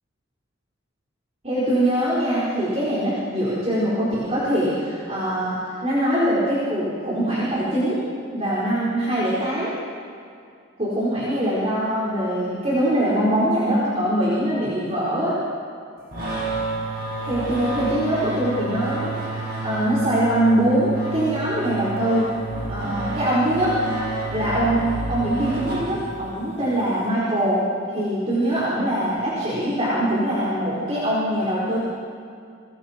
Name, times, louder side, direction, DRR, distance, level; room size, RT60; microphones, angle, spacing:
voice 1, 1.4-8.0 8.3-9.7 10.8-15.3 17.2-22.3 22.7-23.7 24.3-27.6 27.9-31.8, right 1 dB, 30° right, -9 dB, 4.6 m, -23 dB
sound 1, 16.1-26.4, right 2 dB, 50° right, 5.0 m, -29 dB
29.5 x 24.0 x 4.6 m, 2.3 s
head